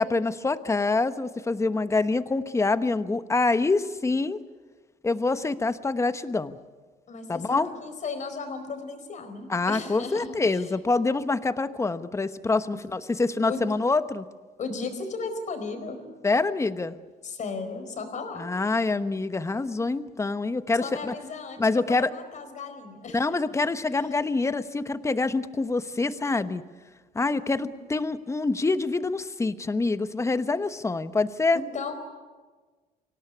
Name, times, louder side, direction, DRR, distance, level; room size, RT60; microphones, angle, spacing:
voice 1, 0.0-4.4 5.0-6.6 7.3-7.7 9.5-14.2 16.2-17.0 18.4-21.1 21.6-22.1 23.1-26.6 27.1-31.6, left 3 dB, 15° left, 12 dB, 1.0 m, -26 dB
voice 2, 7.1-10.7 12.7-12.8 13.4-13.6 14.6-16.0 17.2-18.5 20.8-23.3 23.9-24.0 31.5-31.9, left 4 dB, 45° left, 7 dB, 4.6 m, -35 dB
24.5 x 17.5 x 9.8 m, 1.4 s
cardioid pair, 110°, 17 cm